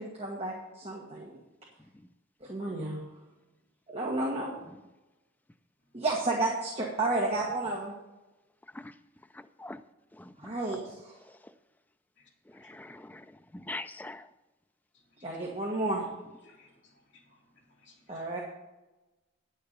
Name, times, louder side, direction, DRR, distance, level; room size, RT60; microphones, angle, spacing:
voice 1, 0.0-1.3 2.4-3.0 3.9-4.5 5.9-7.9 10.4-11.1 15.2-16.0 18.1-18.4, right 2 dB, 30° right, -3 dB, 1.5 m, -31 dB
voice 2, 9.3-9.8 10.2-10.5 12.5-13.3 13.5-14.3, left 2 dB, 10° left, 9 dB, 0.4 m, -43 dB
voice 3, 16.4-18.3, left 3 dB, 55° left, -2 dB, 2.7 m, -62 dB
9.9 x 6.7 x 6.7 m, 1.1 s
head